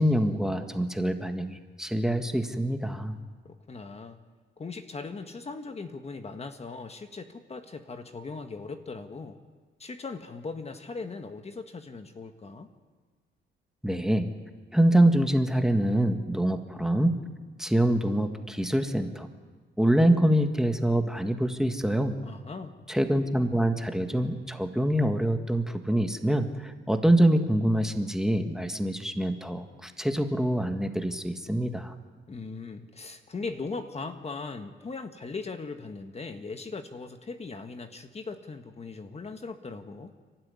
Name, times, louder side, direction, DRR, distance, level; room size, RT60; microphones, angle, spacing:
voice 1, 0.0-3.2 13.8-14.3 14.7-17.2 17.6-19.3 19.8-22.2 22.9-31.9, right 1 dB, 5° right, 6 dB, 1.7 m, -25 dB
voice 2, 3.4-4.2 4.6-9.4 9.8-12.7 22.2-22.8 32.3-40.1, left 4 dB, 30° left, 7 dB, 1.6 m, -39 dB
30.0 x 12.5 x 9.7 m, 1.4 s
cardioid pair, 90°, 20 cm